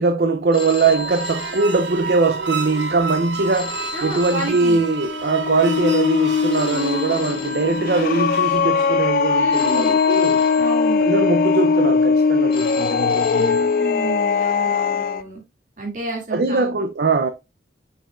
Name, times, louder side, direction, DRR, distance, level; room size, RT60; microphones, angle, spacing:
voice 1, 0.0-10.4 11.0-13.7 16.3-17.3, right 3 dB, 60° right, 0.5 m, -21 dB
Telephone, 0.5-2.4 3.5-5.4 6.5-8.4 9.5-11.4 12.5-14.4, left 5 dB, 30° left, 0.7 m, -36 dB
sound 1, 0.7-10.1, right 4 dB, 85° right, 1.0 m, -31 dB
voice 2, 3.9-4.8 9.3-10.0 10.6-11.0 13.4-15.4 15.8-16.6, right 2 dB, 45° right, 2.3 m, -30 dB
sound 2, 4.7-15.2, left 5 dB, 50° left, 0.3 m, -20 dB
6.5 x 6.0 x 2.4 m
head